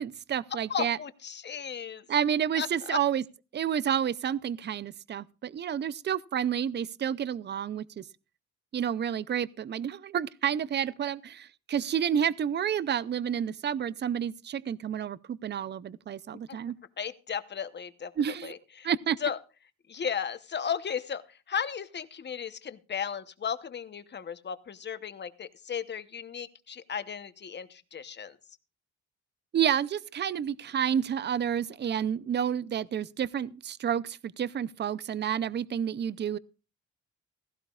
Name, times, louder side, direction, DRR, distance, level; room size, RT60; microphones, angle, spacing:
voice 1, 0.0-1.0 2.1-3.2 3.5-8.0 8.7-16.8 18.2-18.5 18.8-19.2 29.5-36.4, right 9 dB, 35° right, 0.5 m, -30 dB
voice 2, 0.7-2.0 2.6-3.0 16.5-16.6 17.0-18.1 18.4-18.9 19.2-19.4 19.9-28.4, left 7 dB, 35° left, 0.9 m, -35 dB
16.0 x 15.0 x 2.4 m
cardioid pair, 110°, 29 cm